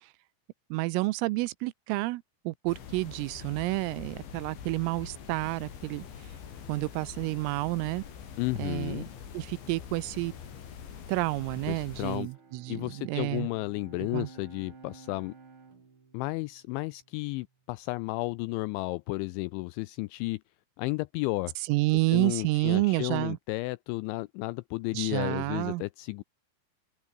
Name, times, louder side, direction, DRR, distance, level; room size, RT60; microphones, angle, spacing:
voice 1, 0.7-6.1 6.7-8.0 8.6-9.0 9.4-10.3 11.1-13.5 14.1-14.3 21.7-23.4 25.0-25.8, right 21 dB, 85° right, 3.5 m, -29 dB
sound 1, 2.7-12.2, left 8 dB, 65° left, 6.0 m, -45 dB
Sink (filling or washing), 5.4-12.4, left 3 dB, 20° left, 5.8 m, -63 dB
voice 2, 8.4-9.1 11.7-12.3 12.7-15.3 16.1-20.4 20.8-21.5 22.1-26.2, left 23 dB, 85° left, 2.6 m, -33 dB
Bowed string instrument, 11.9-17.5, right 5 dB, 30° right, 3.4 m, -53 dB
omnidirectional pair, 5.8 m